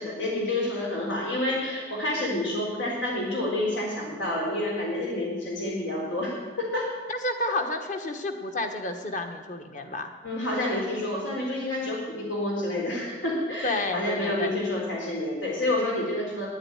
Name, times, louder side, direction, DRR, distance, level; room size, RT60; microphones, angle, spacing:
voice 1, 0.0-6.9 10.2-16.5, left 1 dB, 90° left, -2 dB, 3.7 m, -29 dB
voice 2, 7.1-10.1 13.6-14.6, left 2 dB, 45° left, 6 dB, 1.2 m, -30 dB
10.5 x 8.9 x 9.0 m, 1.3 s
head